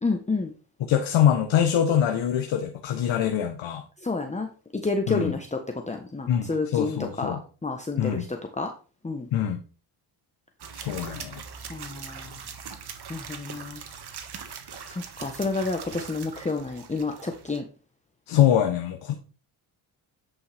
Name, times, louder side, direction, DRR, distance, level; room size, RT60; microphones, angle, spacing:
voice 1, 0.0-0.5 4.0-4.5 4.7-5.6 5.9-8.7 9.0-9.3 10.9-11.3 11.7-12.4 13.1-13.8 14.9-17.6, left 3 dB, 15° left, 4 dB, 1.1 m, -30 dB
voice 2, 0.9-3.8 5.1-5.3 6.3-7.4 8.0-8.2 9.3-9.6 10.7-11.4 18.3-19.1, left 10 dB, 75° left, 5 dB, 1.2 m, -24 dB
sound 1, 10.6-17.6, right 6 dB, 55° right, 1.5 m, -41 dB
9.7 x 5.6 x 3.5 m, 0.36 s
cardioid pair, 65°, 47 cm